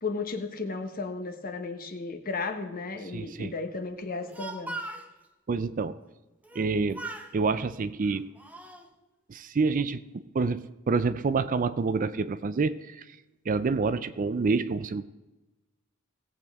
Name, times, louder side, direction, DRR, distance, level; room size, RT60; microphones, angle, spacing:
voice 1, 0.0-4.8, left 4 dB, 40° left, 7 dB, 1.1 m, -34 dB
voice 2, 3.1-3.5 5.5-6.0 6.6-7.1 7.3-8.3 9.3-13.1 13.5-15.0, right 4 dB, 40° right, 13 dB, 0.4 m, -28 dB
Speech, 4.1-5.1 6.4-6.7 6.9-7.3 8.0-8.9, right 2 dB, 5° right, 0.8 m, -39 dB
17.0 x 8.2 x 3.6 m, 1.1 s
head